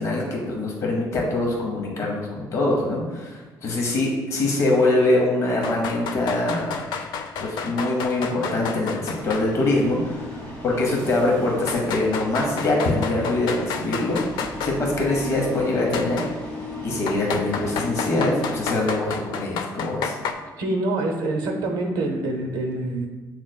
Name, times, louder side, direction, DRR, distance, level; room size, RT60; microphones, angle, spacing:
voice 1, 0.0-6.7 7.4-14.2 14.6-16.2 16.8-20.1, left 2 dB, 45° left, -1 dB, 0.9 m, -23 dB
sound 1, 5.6-9.5 9.8-9.9 10.7-10.8 11.7-14.8 15.9-16.3 17.1-20.3, left 6 dB, 80° left, 0.4 m, -31 dB
sound 2, 9.2-18.7, left 2 dB, 15° left, 1.5 m, -35 dB
voice 2, 20.6-23.1, right 2 dB, 75° right, 2 dB, 0.7 m, -26 dB
7.4 x 3.0 x 2.2 m, 1.2 s
cardioid pair, 155°, 7 cm